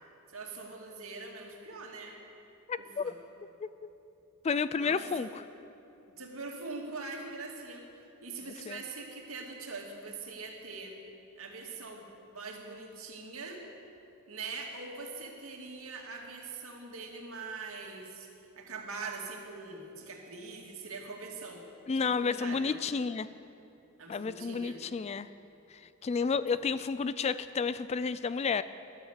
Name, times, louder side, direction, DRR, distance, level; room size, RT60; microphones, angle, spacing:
voice 1, 0.3-2.2 2.8-3.2 4.7-5.3 6.2-7.9 8.2-11.0 11.4-13.6 14.3-18.3 18.6-21.7 22.0-22.8 24.0-24.8 26.1-26.3, right 3 dB, 65° right, 1 dB, 2.4 m, -43 dB
voice 2, 2.7-3.1 3.6-3.7 4.4-5.4 8.7-8.8 21.9-23.3 24.1-25.3 26.0-28.6, left 5 dB, 30° left, 15 dB, 0.3 m, -31 dB
14.5 x 11.5 x 8.3 m, 2.8 s
head